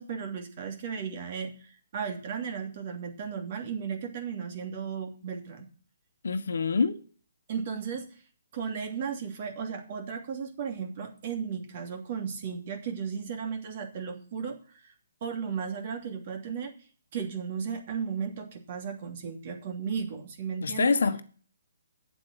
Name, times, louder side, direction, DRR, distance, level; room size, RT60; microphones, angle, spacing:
voice 1, 0.0-5.7 7.5-8.1 8.5-14.9 15.2-16.7 17.1-21.0, right 6 dB, 45° right, 2.8 m, -35 dB
voice 2, 6.2-7.0 20.6-21.2, left 4 dB, 70° left, 1.3 m, -25 dB
9.3 x 7.9 x 7.5 m
hypercardioid pair, 145°, 0 cm